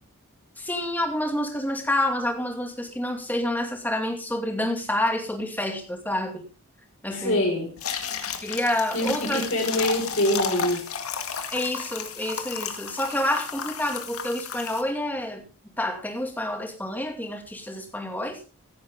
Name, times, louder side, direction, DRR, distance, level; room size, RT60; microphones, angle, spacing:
voice 1, 0.6-6.5 7.0-7.4 8.4-9.4 11.5-15.4 15.8-18.4, left 1 dB, 10° left, 4 dB, 2.3 m, -28 dB
voice 2, 7.1-7.7 8.9-10.8, left 1 dB, 60° left, -1 dB, 5.2 m, -25 dB
sound 1, 7.8-14.8, left 6 dB, 80° left, 1.9 m, -33 dB
16.0 x 10.0 x 3.7 m, 0.34 s
head